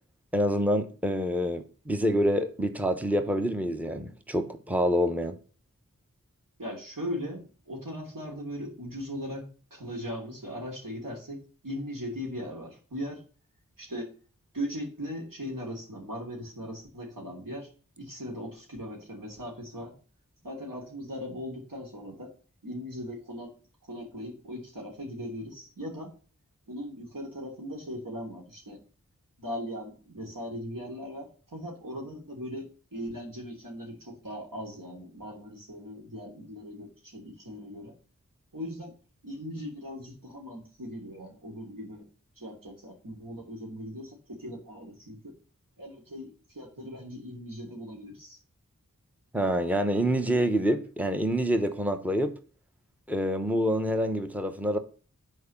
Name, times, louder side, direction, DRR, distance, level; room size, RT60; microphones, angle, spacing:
voice 1, 0.3-5.4 49.3-52.3 53.1-54.8, equal, 5° right, 1.0 m, -27 dB
voice 2, 6.6-13.2 13.8-14.1 14.5-17.7 18.0-19.9 20.4-22.3 22.6-23.5 23.9-26.1 26.7-28.8 29.4-37.9 38.5-38.9 39.2-42.0 42.4-45.3 45.8-48.4, equal, 90° right, 3.2 m, -39 dB
9.3 x 4.6 x 7.1 m
wide cardioid pair, 45°, 32 cm